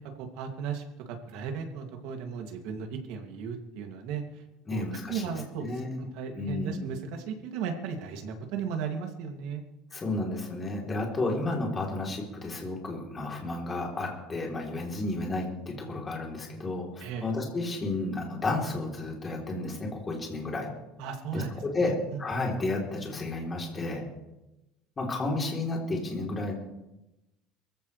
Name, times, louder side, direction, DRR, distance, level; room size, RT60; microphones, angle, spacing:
voice 1, 0.0-4.2 4.7-5.7 6.0-9.6 17.0-17.3 21.0-21.5 21.8-22.2, right 6 dB, 65° right, 4 dB, 2.6 m, -36 dB
voice 2, 4.7-6.0 6.3-6.8 9.9-20.7 21.3-24.0 25.0-26.5, left 2 dB, 20° left, -1 dB, 3.6 m, -32 dB
23.0 x 15.0 x 3.4 m, 0.98 s
cardioid pair, 160°, 0 cm